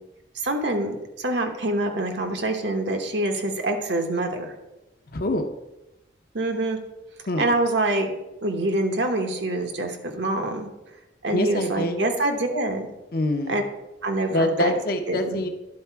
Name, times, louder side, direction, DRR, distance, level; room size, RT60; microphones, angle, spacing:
voice 1, 0.3-4.5 6.3-6.8 7.4-8.1 8.4-10.7 11.2-12.9 13.5-13.6 14.0-14.7 15.1-15.4, right 2 dB, 65° right, 4 dB, 1.0 m, -25 dB
voice 2, 5.1-5.5 7.3-7.5 11.3-12.0 13.1-13.6 14.3-15.5, left 1 dB, 50° left, 6 dB, 0.7 m, -25 dB
11.0 x 4.1 x 4.6 m, 0.97 s
head